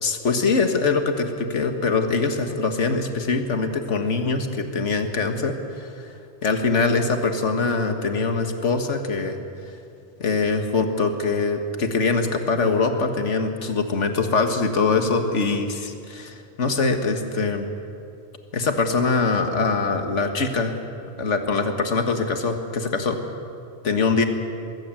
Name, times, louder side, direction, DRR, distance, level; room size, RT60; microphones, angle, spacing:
voice 1, 0.0-6.1 6.4-9.4 10.2-17.7 18.5-20.7 21.2-23.2 23.8-24.2, left 4 dB, 80° left, 6 dB, 1.9 m, -23 dB
22.0 x 16.5 x 7.7 m, 2.5 s
omnidirectional pair, 1.2 m